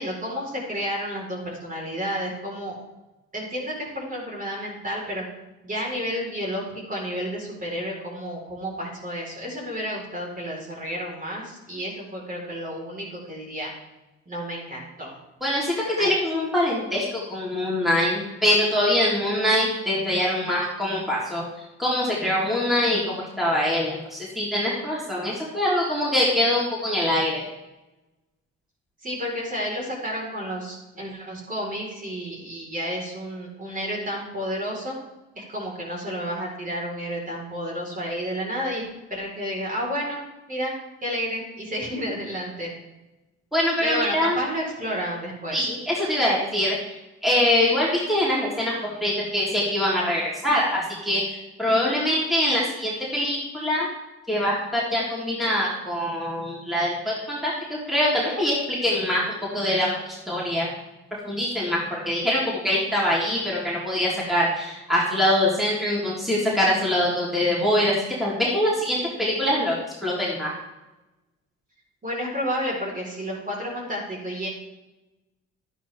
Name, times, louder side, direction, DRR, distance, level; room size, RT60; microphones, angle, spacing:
voice 1, 0.0-2.8 3.3-5.2 5.6-13.7 14.3-15.2 16.0-16.1 29.0-35.0 35.3-40.2 40.5-40.7 41.0-42.7 43.8-45.7 72.0-74.5, equal, 25° right, -3 dB, 4.6 m, -31 dB
voice 2, 15.4-21.4 21.8-27.4 43.5-44.4 45.5-46.8 47.2-48.7 49.0-53.9 54.3-60.7 61.2-67.9 68.2-69.7 70.0-70.5, left 1 dB, ahead, -6 dB, 3.6 m, -24 dB
12.0 x 10.0 x 3.6 m, 1.0 s
cardioid pair, 90°, 30 cm